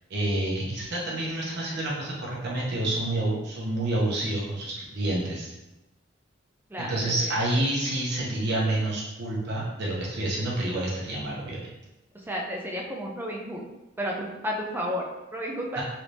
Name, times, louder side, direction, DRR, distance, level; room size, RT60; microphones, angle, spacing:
voice 1, 0.1-5.5 6.8-11.7 15.7-15.8, right 1 dB, 60° right, -4 dB, 0.7 m, -28 dB
voice 2, 6.7-7.3 12.3-13.6 14.0-15.8, equal, 10° right, -1 dB, 0.4 m, -32 dB
3.2 x 3.2 x 2.6 m, 1.0 s
head